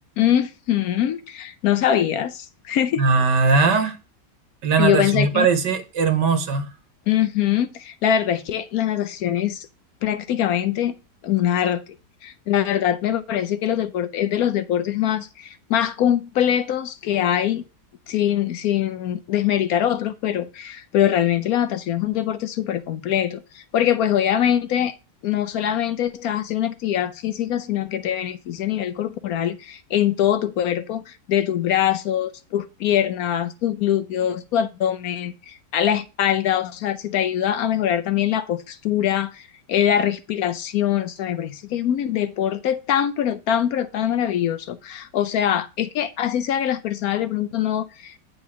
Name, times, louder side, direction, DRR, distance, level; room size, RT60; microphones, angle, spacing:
voice 1, 0.2-3.0 4.8-5.5 7.1-9.7 10.0-11.0 11.2-11.8 12.2-17.6 18.1-24.9 25.2-48.2, left 10 dB, 70° left, 1.0 m, -23 dB
voice 2, 3.0-4.0 4.6-6.7, right 4 dB, 85° right, 1.8 m, -19 dB
9.5 x 3.8 x 7.1 m
omnidirectional pair, 1.8 m